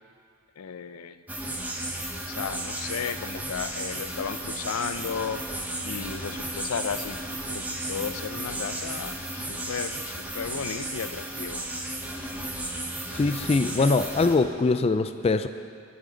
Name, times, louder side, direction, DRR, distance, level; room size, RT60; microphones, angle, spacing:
voice 1, 0.6-1.2 2.3-5.4 5.8-7.2 7.5-11.6, left 6 dB, 90° left, 12 dB, 0.5 m, -34 dB
sound 1, 1.3-14.4, right 1 dB, 10° right, 1.0 m, -34 dB
voice 2, 13.1-15.5, left 3 dB, 30° left, 10 dB, 0.3 m, -23 dB
21.0 x 8.5 x 4.0 m, 2.2 s
head